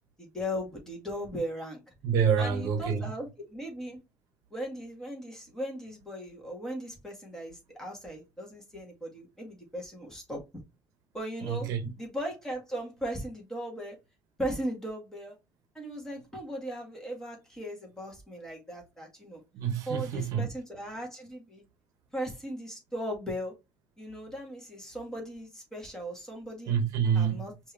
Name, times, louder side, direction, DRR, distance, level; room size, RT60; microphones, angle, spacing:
voice 1, 0.2-1.8 2.4-4.0 4.5-10.4 11.1-11.7 12.0-14.0 14.4-15.3 15.8-19.4 19.9-21.6 22.1-23.5 24.0-26.7 27.1-27.7, equal, 10° left, 1.9 m, -38 dB
voice 2, 2.0-3.0 11.4-11.8 19.5-20.5 26.7-27.4, right 7 dB, 55° right, 1.1 m, -27 dB
5.2 x 3.0 x 3.4 m
cardioid pair, 165°, 7 cm